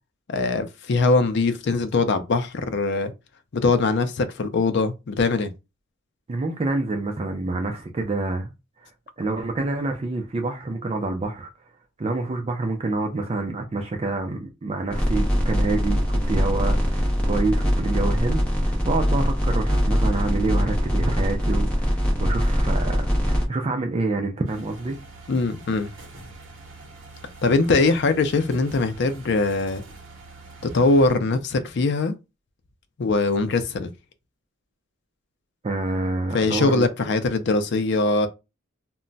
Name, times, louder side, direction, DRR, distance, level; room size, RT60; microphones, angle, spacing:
voice 1, 0.3-3.1 3.5-5.5 25.3-25.9 27.4-29.8 30.6-32.1 33.0-33.9 36.3-38.3, left 3 dB, 55° left, 0.4 m, -22 dB
voice 2, 6.3-8.5 8.8-8.9 9.2-11.5 12.0-25.0 35.6-36.9, right 2 dB, 30° right, 0.4 m, -27 dB
sound 1, 14.9-23.4, equal, 5° left, 0.6 m, -22 dB
sound 2, 24.5-31.2, right 3 dB, 60° right, 0.8 m, -44 dB
2.2 x 2.1 x 3.8 m
head